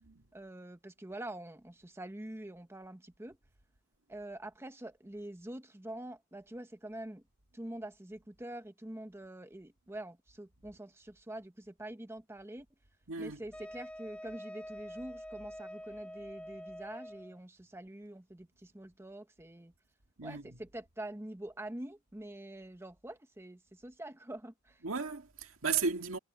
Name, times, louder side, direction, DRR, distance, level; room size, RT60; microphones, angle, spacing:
voice 1, 0.3-3.4 4.1-7.2 7.5-12.6 13.2-19.7 20.2-24.8, right 1 dB, 10° right, 0.8 m, -45 dB
voice 2, 13.1-13.4 20.2-20.6 24.8-26.2, right 5 dB, 70° right, 2.2 m, -35 dB
Wind instrument woodwind instrument, 13.5-17.4, equal, 5° left, 1.9 m, -46 dB
head